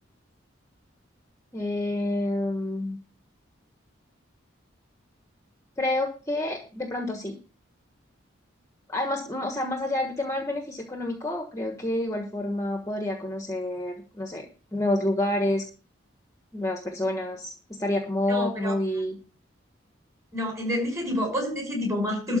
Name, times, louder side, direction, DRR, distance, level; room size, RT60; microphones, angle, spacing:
voice 1, 1.5-3.0 5.8-7.4 8.9-14.5 14.7-15.6 16.5-19.2, left 1 dB, 15° left, 4 dB, 1.3 m, -28 dB
voice 2, 18.3-18.7 20.3-22.4, left 1 dB, 15° right, 1 dB, 5.8 m, -28 dB
12.5 x 4.9 x 8.3 m, 0.34 s
head